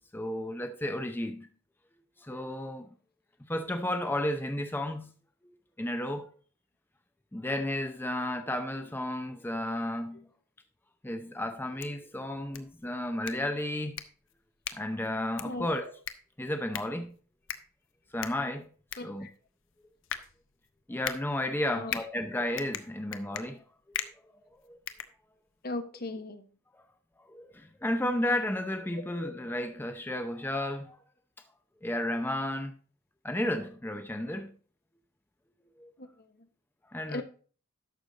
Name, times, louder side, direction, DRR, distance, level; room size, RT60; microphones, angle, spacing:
voice 1, 0.1-1.5 2.2-2.9 3.5-5.1 5.8-6.3 7.3-10.3 11.0-14.0 14.7-16.0 16.4-17.1 18.1-18.7 19.0-19.3 20.9-23.6 24.7-24.8 27.3-31.0 31.8-32.7 33.2-34.5 35.8-35.9 36.9-37.2, left 1 dB, 10° left, 0.6 m, -33 dB
sound 1, 11.6-25.7, left 9 dB, 60° left, 0.9 m, -42 dB
voice 2, 25.6-26.4 29.2-29.3 36.0-36.1 37.1-37.2, left 2 dB, 45° left, 1.0 m, -36 dB
11.5 x 6.7 x 3.9 m
head